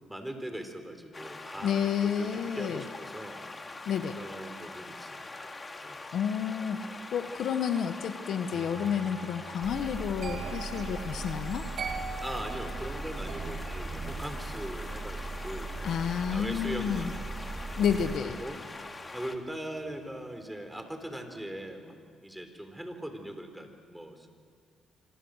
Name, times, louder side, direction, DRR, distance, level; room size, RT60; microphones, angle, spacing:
voice 1, 0.1-3.5 4.1-5.5 5.8-6.0 8.5-8.7 12.2-15.9 16.3-17.1 17.4-18.6 19.1-24.3, right 1 dB, 5° right, 6 dB, 4.1 m, -41 dB
sound 1, 1.1-19.4, left 3 dB, 25° left, 2.4 m, -43 dB
voice 2, 1.6-2.8 3.9-4.2 6.1-6.8 7.1-11.7 15.8-17.1 17.8-18.4, left 8 dB, 70° left, 8 dB, 1.5 m, -30 dB
sound 2, 8.5-19.5 19.8-20.1, right 5 dB, 60° right, 2.5 m, -45 dB
sound 3, 9.6-18.2, right 3 dB, 35° right, 2.5 m, -39 dB
27.0 x 25.5 x 6.7 m, 2.1 s
cardioid pair, 90°, 0 cm